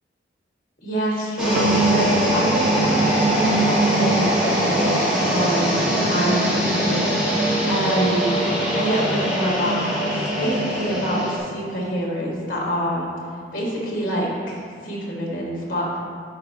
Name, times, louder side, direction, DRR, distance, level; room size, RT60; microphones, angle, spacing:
voice 1, 0.8-8.4 8.7-13.1 13.5-16.0, equal, 45° left, -4 dB, 1.8 m, -26 dB
sound 1, 1.4-11.4, right 1 dB, 5° right, 1.5 m, -21 dB
sound 2, 1.6-8.1, right 2 dB, 80° right, 0.4 m, -32 dB
11.5 x 4.8 x 2.9 m, 2.3 s
head